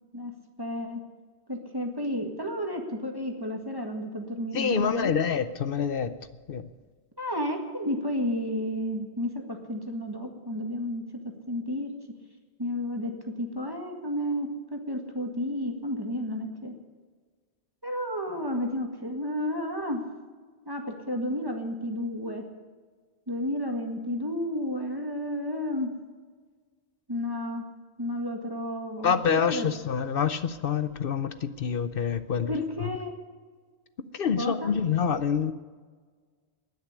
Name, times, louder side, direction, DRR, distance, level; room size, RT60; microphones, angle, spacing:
voice 1, 0.6-1.0 1.5-5.1 7.2-11.1 11.5-11.9 12.6-16.8 17.8-20.0 20.7-22.4 23.3-25.9 27.1-27.7 28.0-29.7 32.5-33.1 34.4-34.7, left 1 dB, 20° right, 2 dB, 1.8 m, -32 dB
voice 2, 4.5-6.1 6.5-6.6 29.0-32.5 34.1-35.5, left 7 dB, 60° left, 12 dB, 0.9 m, -26 dB
20.0 x 6.7 x 9.6 m, 1.5 s
omnidirectional pair, 1.1 m